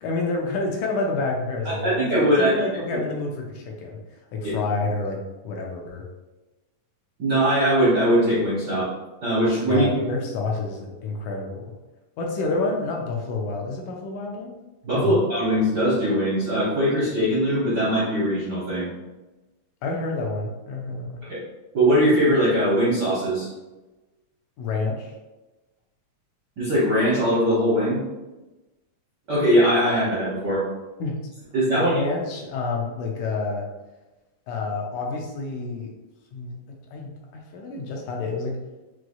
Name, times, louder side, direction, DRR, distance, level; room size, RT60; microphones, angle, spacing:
voice 1, 0.0-4.0 4.3-6.0 9.7-11.7 12.2-14.5 14.9-15.2 19.8-21.2 24.6-25.1 31.0-31.2 31.7-33.7 34.5-35.9 36.3-36.6 36.9-38.6, left 3 dB, 75° left, 0 dB, 1.9 m, -28 dB
voice 2, 1.8-2.6 4.4-4.5 7.2-8.9 9.2-10.1 14.8-18.9 21.2-21.4 21.7-23.5 26.6-28.0 29.3-30.6 31.5-31.9, equal, 70° right, -9 dB, 0.9 m, -21 dB
6.0 x 3.1 x 2.3 m, 1.1 s
omnidirectional pair, 3.8 m